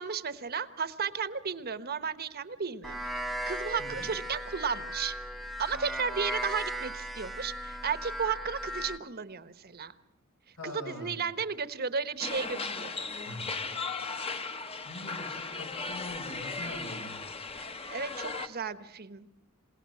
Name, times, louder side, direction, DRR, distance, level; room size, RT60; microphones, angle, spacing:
voice 1, 0.0-3.0 3.5-5.1 5.6-9.9 10.6-13.1 17.6-19.5, right 6 dB, 45° right, 12 dB, 1.2 m, -34 dB
sound 1, 2.8-9.0, equal, ahead, 0.9 m, -37 dB
voice 2, 3.8-4.1 10.6-11.2 13.2-13.6 14.8-17.2, left 1 dB, 75° left, 5 dB, 4.5 m, -43 dB
sound 2, 12.2-18.5, left 4 dB, 25° left, 1.2 m, -37 dB
28.0 x 17.5 x 7.7 m, 0.95 s
head